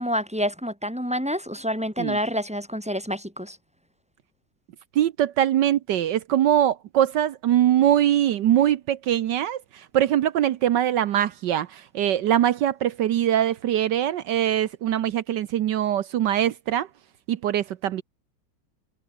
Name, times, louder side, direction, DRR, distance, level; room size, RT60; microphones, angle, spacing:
voice 1, 0.0-3.6, equal, 5° right, 5.0 m, -28 dB
voice 2, 4.9-16.9 17.3-18.0, right 11 dB, 70° right, 1.4 m, -22 dB
omnidirectional pair, 2.0 m